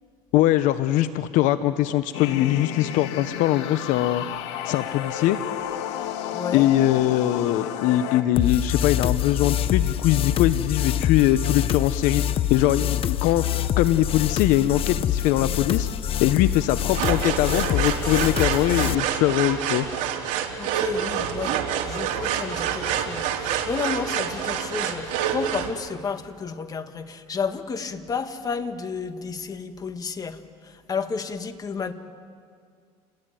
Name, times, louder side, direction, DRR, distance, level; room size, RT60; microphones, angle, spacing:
voice 1, 0.3-4.2 4.6-5.4 6.5-12.2 12.5-13.4 13.7-15.9 16.2-19.9, left 13 dB, 65° left, 12 dB, 0.9 m, -22 dB
sound 1, 2.1-8.2, left 11 dB, 90° left, 2.0 m, -32 dB
voice 2, 6.3-6.7 20.6-31.9, left 5 dB, 25° left, 8 dB, 1.8 m, -32 dB
sound 2, 8.4-18.9, left 11 dB, 40° left, 0.8 m, -25 dB
sound 3, 16.9-25.7, right 8 dB, 60° right, 3.5 m, -27 dB
29.0 x 20.5 x 9.2 m, 2.2 s
supercardioid pair, 115°, 14 cm